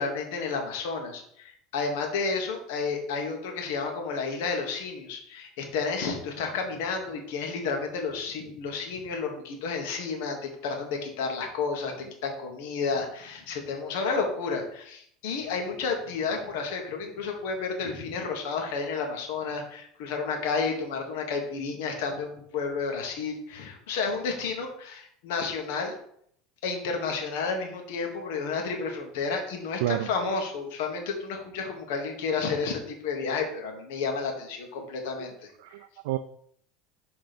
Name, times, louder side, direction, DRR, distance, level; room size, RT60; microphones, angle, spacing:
voice 1, 0.0-11.9 12.2-25.9 26.6-35.5, left 4 dB, 80° left, 3 dB, 1.5 m, -31 dB
voice 2, 34.8-35.1 35.6-36.2, right 15 dB, 80° right, 10 dB, 0.3 m, -31 dB
6.0 x 3.4 x 5.1 m, 0.67 s
supercardioid pair, 120°, 0 cm